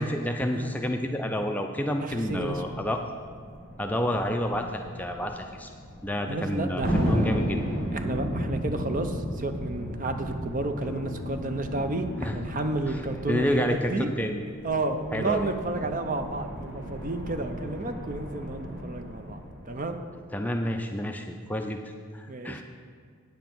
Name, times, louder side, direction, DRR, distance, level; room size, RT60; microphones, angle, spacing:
voice 1, 0.0-3.0 3.8-5.7 6.0-7.6 12.2-12.4 12.9-13.0 13.3-14.4 15.1-15.5 20.3-21.8 22.1-22.6, equal, 5° left, 3 dB, 0.4 m, -29 dB
voice 2, 2.0-2.6 6.3-7.3 7.9-14.1 14.6-19.4 19.7-20.0 22.3-22.6, right 2 dB, 35° right, 7 dB, 0.6 m, -31 dB
sound 1, 2.1-20.5, equal, 55° right, 2.5 m, -43 dB
Thunder, 6.8-13.7, equal, 75° right, 2.2 m, -31 dB
sound 2, 10.8-15.0, left 5 dB, 85° left, 0.4 m, -44 dB
9.0 x 7.3 x 5.9 m, 2.1 s
head